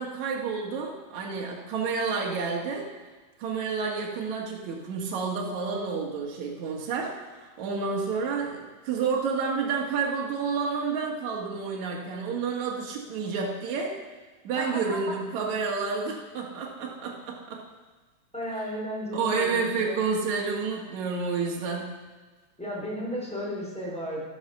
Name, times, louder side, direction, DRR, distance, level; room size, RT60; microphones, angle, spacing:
voice 1, 0.0-2.9 3.4-13.9 14.4-17.6 19.1-21.9, right 5 dB, 65° right, -1 dB, 2.8 m, -30 dB
voice 2, 14.6-15.1 18.3-19.9 22.6-24.2, equal, ahead, -4 dB, 4.1 m, -34 dB
12.5 x 11.5 x 6.7 m, 1.3 s
omnidirectional pair, 3.8 m